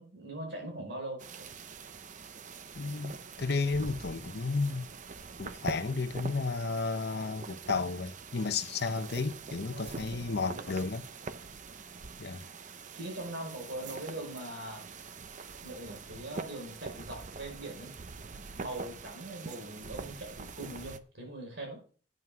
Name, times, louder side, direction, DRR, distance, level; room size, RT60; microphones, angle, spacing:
voice 1, 0.0-1.5 9.7-10.6 12.9-14.9 15.6-18.0 18.6-21.8, right 1 dB, 75° right, 4.7 m, -41 dB
sound 1, 1.2-21.0, right 4 dB, 45° right, 0.6 m, -44 dB
voice 2, 2.8-4.9 5.4-11.0 12.2-12.4, left 4 dB, 60° left, 0.7 m, -33 dB
9.2 x 5.9 x 6.0 m
head